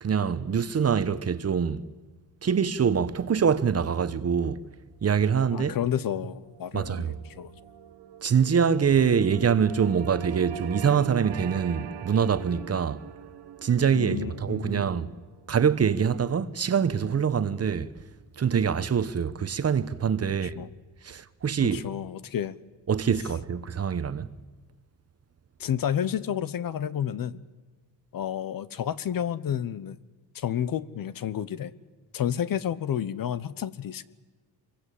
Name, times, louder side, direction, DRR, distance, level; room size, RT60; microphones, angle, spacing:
voice 1, 0.0-1.8 2.4-4.6 5.0-5.8 6.7-7.2 8.2-13.0 13.6-15.1 15.5-17.9 18.4-20.5 21.0-21.8 22.9-24.3, right 7 dB, 35° right, 1.1 m, -24 dB
voice 2, 5.5-7.5 13.9-14.9 20.3-20.7 21.6-22.6 25.6-27.4 28.1-30.0 30.3-31.7 32.1-34.0, left 9 dB, 55° left, 1.0 m, -30 dB
sound 1, 5.7-17.8, right 10 dB, 70° right, 1.5 m, -43 dB
26.0 x 23.0 x 8.4 m
cardioid pair, 110°, 42 cm